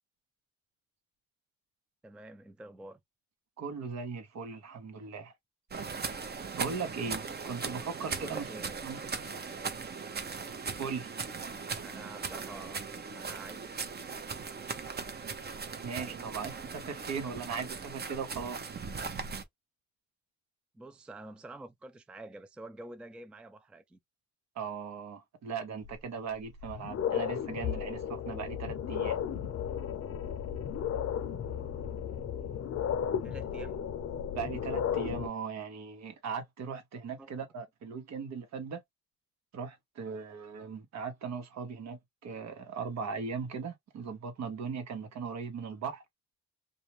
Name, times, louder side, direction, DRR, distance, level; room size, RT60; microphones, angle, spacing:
voice 1, 2.0-3.0 8.2-8.8 11.8-12.8 13.1-13.9 20.7-24.0 33.2-33.8 37.2-37.3, right 2 dB, 5° right, 0.3 m, -47 dB
voice 2, 3.6-5.3 6.6-8.4 8.8-9.0 10.8-11.1 15.8-18.6 24.5-29.2 34.3-38.8 39.5-46.0, right 5 dB, 65° right, 1.0 m, -38 dB
sound 1, 5.7-19.4, right 5 dB, 35° right, 0.7 m, -39 dB
sound 2, 25.8-25.9 26.5-35.3, left 8 dB, 55° left, 0.6 m, -34 dB
2.5 x 2.1 x 3.0 m
cardioid pair, 90°, 30 cm